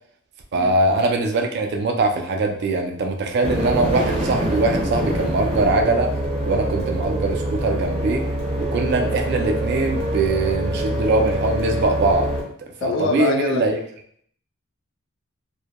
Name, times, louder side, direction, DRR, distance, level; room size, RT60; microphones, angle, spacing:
voice 1, 0.5-6.1 6.5-8.2 8.6-13.8, right 2 dB, 50° right, 3 dB, 0.3 m, -22 dB
sound 1, 3.4-12.4, right 1 dB, 30° right, 0.7 m, -24 dB
voice 2, 12.8-13.6, left 4 dB, 55° left, 3 dB, 0.3 m, -24 dB
2.1 x 2.1 x 2.8 m, 0.63 s
head